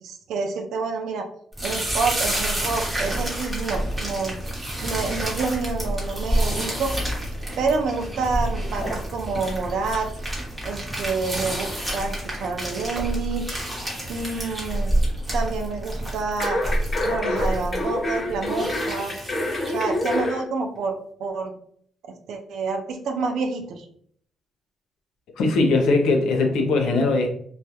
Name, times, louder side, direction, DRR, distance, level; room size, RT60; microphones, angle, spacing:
voice 1, 0.0-1.3 1.6-4.4 4.8-6.9 7.6-10.1 10.6-13.4 14.1-14.9 15.3-16.6 17.0-19.2 19.7-21.5 22.3-23.9, right 4 dB, 75° right, 3 dB, 0.4 m, -28 dB
sound 1, 1.5-20.3, right 1 dB, 15° right, 0.9 m, -28 dB
sound 2, 16.4-20.4 20.8-20.9, left 1 dB, 35° left, 0.5 m, -26 dB
voice 2, 25.4-27.3, left 3 dB, 85° left, 3 dB, 0.5 m, -20 dB
2.3 x 2.0 x 2.8 m, 0.62 s
cardioid pair, 90°, 0 cm